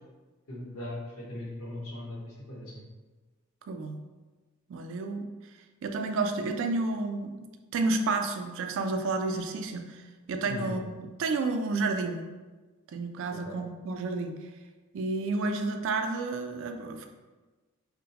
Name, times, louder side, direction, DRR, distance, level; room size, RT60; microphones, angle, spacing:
voice 1, 0.5-2.8 10.5-10.7 13.3-13.6, left 1 dB, 75° left, -3 dB, 0.8 m, -39 dB
voice 2, 3.7-4.0 4.7-5.3 5.8-10.9 11.2-12.2 12.9-14.4 14.9-17.1, right 3 dB, 60° right, 5 dB, 0.3 m, -31 dB
3.7 x 2.1 x 2.8 m, 1.3 s
head